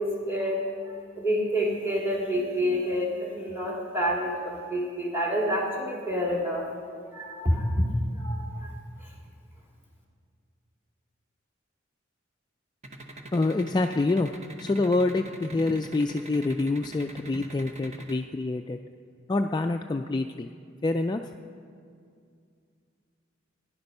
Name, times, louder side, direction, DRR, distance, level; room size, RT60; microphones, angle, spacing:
voice 1, 0.0-6.6 7.1-7.9 8.2-8.7, equal, 10° right, -2 dB, 2.3 m, -28 dB
sound 1, 12.8-18.1, right 1 dB, 35° right, 1.0 m, -42 dB
voice 2, 13.3-14.3 14.6-18.8 19.3-20.5 20.8-21.2, left 2 dB, 20° left, 5 dB, 0.3 m, -26 dB
15.5 x 10.5 x 5.4 m, 2.3 s
head